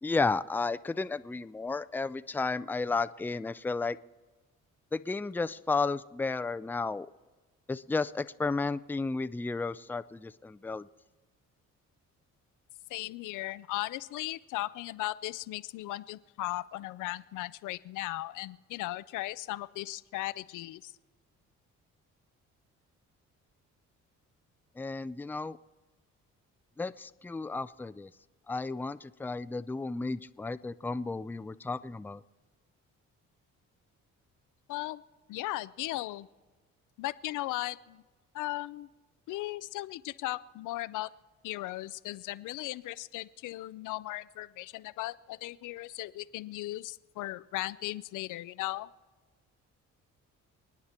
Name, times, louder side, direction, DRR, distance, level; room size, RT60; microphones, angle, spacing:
voice 1, 0.0-4.0 4.9-7.1 7.7-10.9 24.8-25.6 26.8-28.1 28.5-32.2, left 3 dB, 5° left, 14 dB, 0.4 m, -33 dB
voice 2, 12.9-20.9 34.7-35.0 35.3-36.3 37.0-38.0 38.3-38.9 39.3-41.1 41.4-48.9, left 17 dB, 85° left, 17 dB, 0.5 m, -37 dB
28.0 x 9.6 x 4.4 m, 1.3 s
cardioid pair, 90°, 30 cm